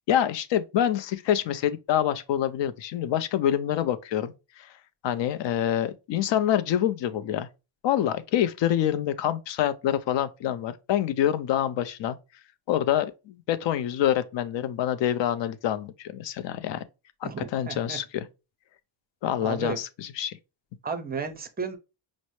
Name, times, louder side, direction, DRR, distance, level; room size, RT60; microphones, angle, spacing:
voice 1, 0.1-4.8 5.0-7.5 7.8-12.2 12.7-16.8 17.2-18.3 19.2-20.4, left 10 dB, 65° left, 0.5 m, -26 dB
voice 2, 17.2-18.0 19.4-19.8 20.8-21.8, right 5 dB, 20° right, 0.4 m, -33 dB
5.2 x 2.0 x 3.0 m
cardioid pair, 145°, 48 cm